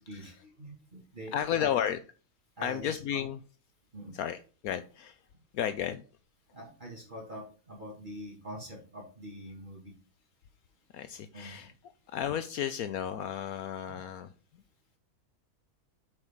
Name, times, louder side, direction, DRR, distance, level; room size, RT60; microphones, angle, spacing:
voice 1, 0.1-1.7 2.6-3.2 3.9-4.1 6.5-9.9 11.0-11.7, equal, 30° right, -2 dB, 2.6 m, -45 dB
voice 2, 1.3-2.0 2.6-3.4 4.2-5.2 5.5-6.0 10.9-11.7 12.1-14.3, left 9 dB, 75° left, 10 dB, 1.1 m, -33 dB
7.7 x 4.8 x 5.7 m, 0.36 s
omnidirectional pair, 1.6 m